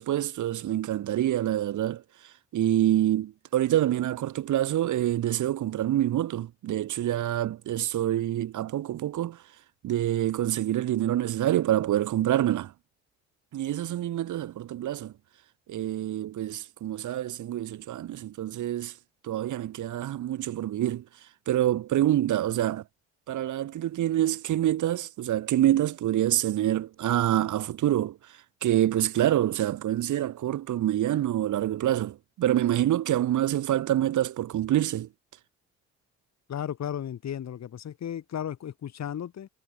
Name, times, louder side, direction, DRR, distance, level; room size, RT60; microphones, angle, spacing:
voice 1, 0.0-9.4 9.8-12.7 13.5-15.1 15.7-18.9 19.2-21.0 21.5-22.8 23.3-35.1, right 12 dB, 75° right, 7.2 m, -26 dB
voice 2, 36.5-39.5, left 9 dB, 60° left, 6.0 m, -34 dB
cardioid pair, 90°, 30 cm